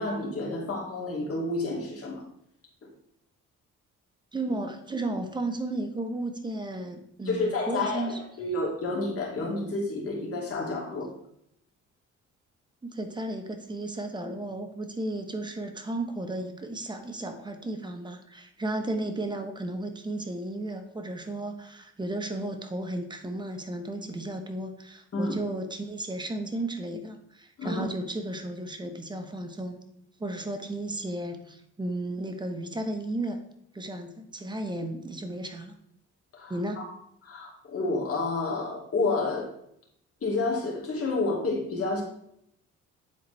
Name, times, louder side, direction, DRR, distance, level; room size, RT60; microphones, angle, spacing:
voice 1, 0.0-2.2 2.8-2.9 7.3-11.1 25.1-25.3 27.6-27.8 36.3-36.9 37.2-39.5 40.2-42.0, left 3 dB, 50° left, -2 dB, 2.4 m, -30 dB
voice 2, 4.3-8.2 12.8-29.8 30.2-33.4 33.7-35.7 36.5-36.8, right 1 dB, 15° right, 6 dB, 1.0 m, -34 dB
9.9 x 4.0 x 3.3 m, 0.73 s
cardioid pair, 90°, 30 cm